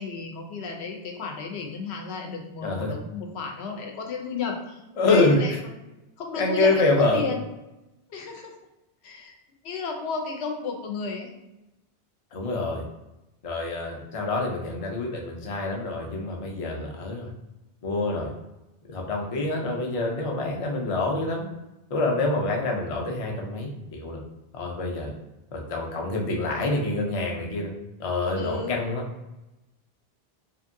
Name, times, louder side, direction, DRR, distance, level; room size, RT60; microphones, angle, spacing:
voice 1, 0.0-5.8 6.2-7.4 8.1-8.5 9.0-9.3 9.6-11.3 28.3-28.8, left 5 dB, 90° left, 2 dB, 0.9 m, -33 dB
voice 2, 2.6-2.9 5.0-5.4 6.4-7.3 12.3-12.9 13.4-17.3 17.8-18.3 18.9-21.5 21.9-24.2 24.5-25.1 25.5-27.7 28.0-29.0, left 2 dB, 45° left, 0 dB, 0.5 m, -26 dB
2.7 x 2.6 x 2.6 m, 0.98 s
omnidirectional pair, 1.1 m